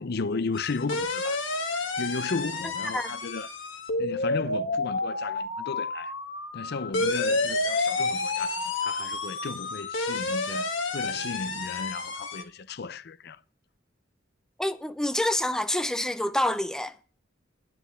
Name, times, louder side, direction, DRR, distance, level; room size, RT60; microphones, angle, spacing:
voice 1, 0.0-1.4 2.0-3.5 4.0-6.1 6.5-13.4, left 4 dB, 60° left, 0.6 m, -34 dB
sound 1, 0.5-12.4, left 3 dB, 85° left, 1.9 m, -30 dB
voice 2, 14.6-16.9, left 1 dB, 5° left, 0.6 m, -27 dB
10.5 x 6.1 x 8.4 m
head